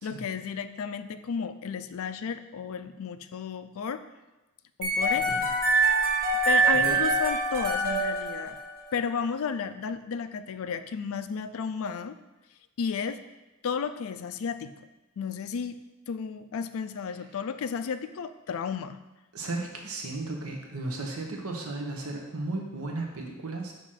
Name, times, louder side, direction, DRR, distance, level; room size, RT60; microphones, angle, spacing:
voice 1, 0.0-4.0 4.8-5.3 6.5-8.6 8.9-12.2 12.8-13.2 13.6-14.9 15.2-15.8 16.1-19.0, left 6 dB, 65° left, 11 dB, 0.4 m, -33 dB
sound 1, 4.8-8.9, right 3 dB, 45° right, 1.1 m, -25 dB
voice 2, 19.3-23.7, right 2 dB, 75° right, 2 dB, 1.0 m, -35 dB
6.3 x 3.0 x 5.7 m, 1.1 s
head